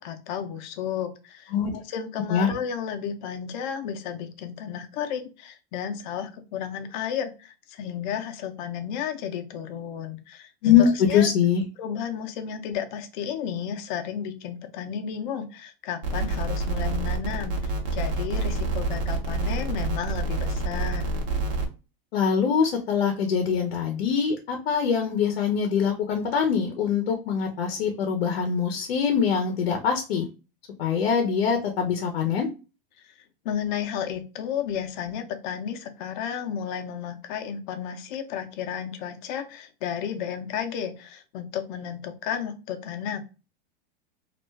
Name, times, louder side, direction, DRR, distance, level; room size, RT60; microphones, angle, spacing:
voice 1, 0.0-10.5 10.8-11.3 11.8-21.2 33.0-33.1 33.4-43.2, left 8 dB, 55° left, 7 dB, 0.6 m, -33 dB
voice 2, 10.6-11.6 22.1-30.3 30.8-32.5, left 7 dB, 90° left, 4 dB, 0.7 m, -23 dB
sound 1, 16.0-21.7, right 2 dB, 50° right, 0.8 m, -27 dB
2.5 x 2.2 x 3.2 m, 0.31 s
supercardioid pair, 145°, 29 cm